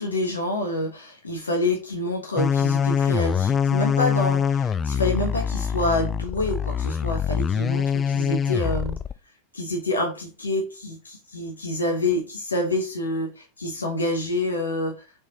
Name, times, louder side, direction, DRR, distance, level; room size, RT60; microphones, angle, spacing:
voice 1, 0.0-9.0 9.5-14.9, left 2 dB, 75° left, 1 dB, 1.1 m, -27 dB
sound 1, 2.4-9.1, left 7 dB, 20° left, 0.3 m, -24 dB
4.6 x 4.0 x 2.9 m, 0.31 s
figure-of-eight pair, 90°, 0 cm